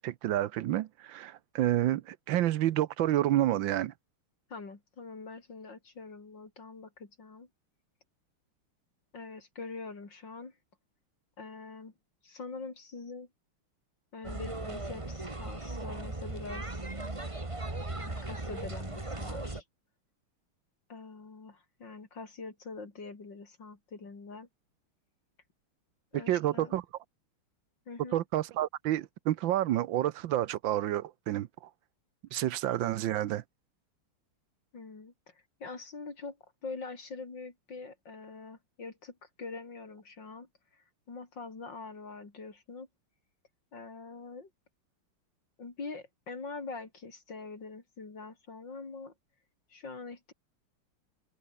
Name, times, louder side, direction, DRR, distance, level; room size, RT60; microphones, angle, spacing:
voice 1, 0.0-3.9 26.1-26.8 28.1-31.5 32.3-33.4, right 13 dB, 70° right, 1.4 m, -29 dB
voice 2, 4.5-7.5 9.1-10.6 11.4-11.9 12.2-13.3 14.1-16.9 17.9-19.6 20.9-24.5 26.1-26.8 27.9-28.2 34.7-42.9 43.7-44.5 45.6-49.1 49.7-50.3, left 4 dB, 55° left, 4.4 m, -44 dB
sound 1, 14.2-19.6, right 2 dB, 15° right, 1.9 m, -37 dB
omnidirectional pair, 2.4 m